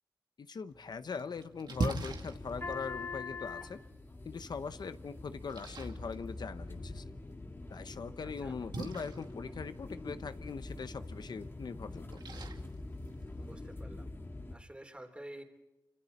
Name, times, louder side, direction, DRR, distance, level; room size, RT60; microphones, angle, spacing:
voice 1, 0.4-3.8 4.2-7.1 7.7-12.2, left 5 dB, 70° left, 12 dB, 0.7 m, -41 dB
Splash splatter, 0.7-13.7, right 3 dB, 75° right, 2.2 m, -44 dB
sound 1, 1.7-14.5, left 2 dB, 30° left, 1.9 m, -44 dB
voice 2, 13.3-14.1 14.5-15.4, right 1 dB, 15° right, 5 dB, 3.5 m, -49 dB
28.5 x 26.0 x 4.2 m, 1.0 s
wide cardioid pair, 130°, 7 cm